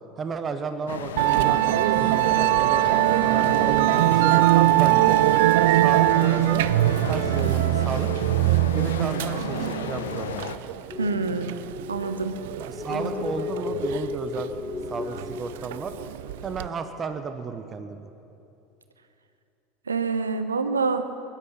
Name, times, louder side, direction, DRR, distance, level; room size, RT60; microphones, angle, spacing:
voice 1, 0.2-5.2 5.8-6.7 7.1-8.1 8.7-10.5 12.6-14.5 14.9-15.9 16.4-18.1, right 5 dB, 30° right, 9 dB, 1.0 m, -33 dB
sound 1, 0.9-10.6, left 8 dB, 70° left, 0.7 m, -34 dB
Musical instrument, 1.2-16.7, right 16 dB, 60° right, 0.3 m, -22 dB
sound 2, 10.9-17.4, left 5 dB, 20° left, 0.8 m, -35 dB
voice 2, 11.0-11.6 11.9-12.4 12.9-13.1 19.9-21.1, right 4 dB, 80° right, 10 dB, 0.9 m, -26 dB
21.5 x 11.5 x 5.8 m, 2.7 s
figure-of-eight pair, 75°, 0 cm